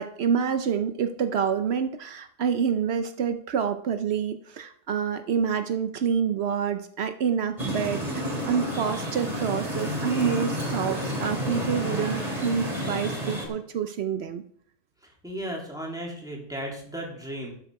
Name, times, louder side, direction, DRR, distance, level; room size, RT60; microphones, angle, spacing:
voice 1, 0.0-14.4, right 7 dB, 75° right, 8 dB, 1.0 m, -27 dB
sound 1, 7.6-13.5, equal, 35° right, 2.7 m, -30 dB
voice 2, 15.0-17.5, right 1 dB, 5° right, -2 dB, 3.1 m, -35 dB
12.5 x 7.9 x 4.7 m, 0.66 s
omnidirectional pair, 1.1 m